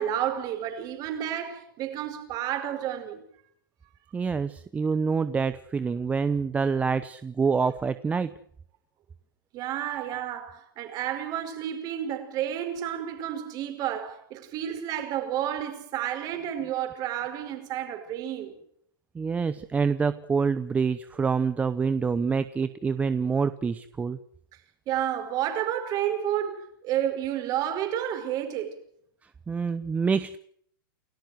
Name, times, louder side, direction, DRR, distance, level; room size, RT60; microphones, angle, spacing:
voice 1, 0.0-3.2 9.5-18.5 24.9-28.8, right 11 dB, 35° right, 5.1 m, -31 dB
voice 2, 4.1-8.3 19.1-24.2 29.5-30.4, right 5 dB, 10° right, 0.8 m, -26 dB
29.0 x 14.5 x 7.9 m
hypercardioid pair, 140°, 12 cm